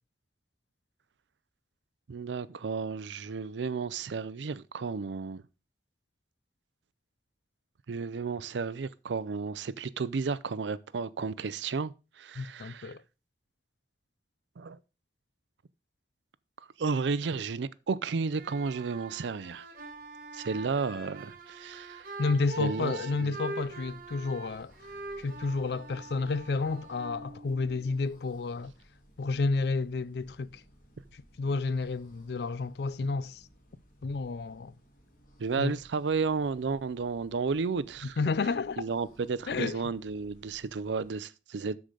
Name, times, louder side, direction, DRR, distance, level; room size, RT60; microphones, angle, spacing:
voice 1, 2.1-5.4 7.9-13.0 14.6-14.8 16.8-19.7 20.3-22.1 22.6-22.9 23.2-23.3 35.4-38.2 38.8-41.8, right 4 dB, 90° right, 0.5 m, -33 dB
voice 2, 12.4-13.0 22.2-24.7 25.2-28.7 29.2-30.6 31.1-33.4 34.0-34.7 35.6-35.8 38.2-38.8 39.5-39.8, left 3 dB, 70° left, 0.4 m, -31 dB
sound 1, 18.2-28.0, right 2 dB, 50° right, 1.2 m, -44 dB
sound 2, 23.6-41.1, equal, 50° left, 2.1 m, -60 dB
13.0 x 4.9 x 3.8 m
head